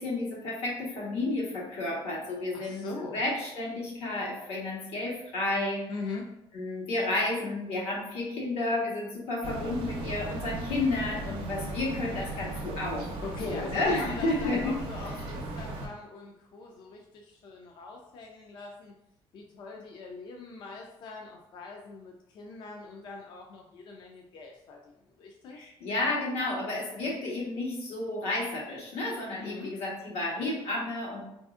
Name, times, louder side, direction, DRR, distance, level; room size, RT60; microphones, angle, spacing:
voice 1, 0.0-5.9 6.5-14.8 25.5-31.2, left 2 dB, 90° left, -3 dB, 1.2 m, -31 dB
voice 2, 2.5-3.2 5.9-6.3 13.2-18.9 19.3-25.7 29.3-29.7, left 3 dB, 50° left, 0 dB, 0.4 m, -42 dB
sound 1, 9.4-15.9, right 2 dB, 70° right, 0.6 m, -37 dB
4.0 x 2.6 x 2.4 m, 0.84 s
cardioid pair, 175°, 10 cm